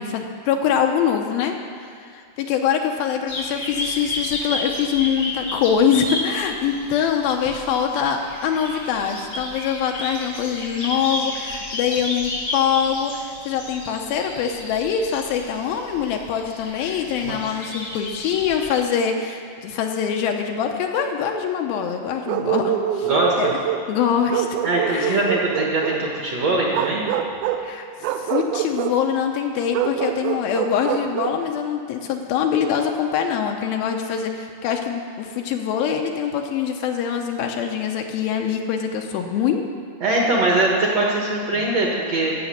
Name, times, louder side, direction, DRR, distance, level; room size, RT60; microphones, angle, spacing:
voice 1, 0.0-1.6 2.0-23.1 23.4-23.6 23.9-24.5 24.9-25.3 27.6-39.6 41.6-41.7, left 7 dB, 80° left, 3 dB, 2.5 m, -24 dB
sound 1, 3.3-18.8, left 2 dB, 45° left, 1.4 m, -32 dB
Bark, 22.3-23.9 24.3-26.0 26.7-27.7 28.0-29.0 29.7-31.4, right 10 dB, 80° right, 2.4 m, -25 dB
voice 2, 23.0-23.5 24.6-27.1 40.0-42.3, right 2 dB, 55° right, -2 dB, 2.0 m, -21 dB
14.0 x 6.9 x 8.2 m, 2.1 s
omnidirectional pair, 4.5 m